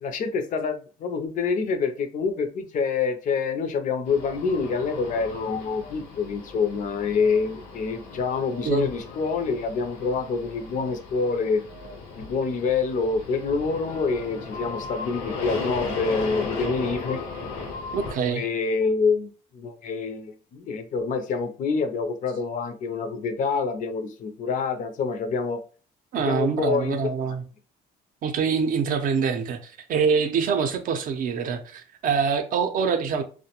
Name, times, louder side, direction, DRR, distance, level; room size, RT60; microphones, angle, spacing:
voice 1, 0.0-11.6 12.2-17.2 18.1-25.6 26.2-27.1, left 4 dB, 50° left, 0.5 m, -26 dB
sound 1, 4.1-18.1, left 4 dB, 85° left, 0.8 m, -36 dB
voice 2, 17.9-18.4 26.1-27.4 28.2-33.2, right 6 dB, 55° right, 0.5 m, -25 dB
2.2 x 2.1 x 2.8 m
cardioid pair, 110°, 17 cm